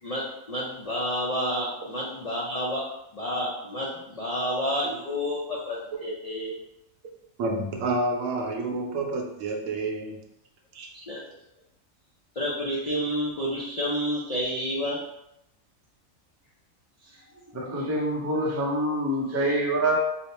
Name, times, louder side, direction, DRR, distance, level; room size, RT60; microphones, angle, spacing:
voice 1, 0.0-2.8 3.1-6.5 10.9-11.2 12.4-15.0, equal, 75° left, -5 dB, 0.3 m, -30 dB
voice 2, 7.4-10.2 10.7-10.9, right 2 dB, 70° right, 1 dB, 0.9 m, -29 dB
voice 3, 17.5-20.0, right 1 dB, 25° right, -3 dB, 0.3 m, -26 dB
2.9 x 2.1 x 4.1 m, 0.85 s
omnidirectional pair, 1.4 m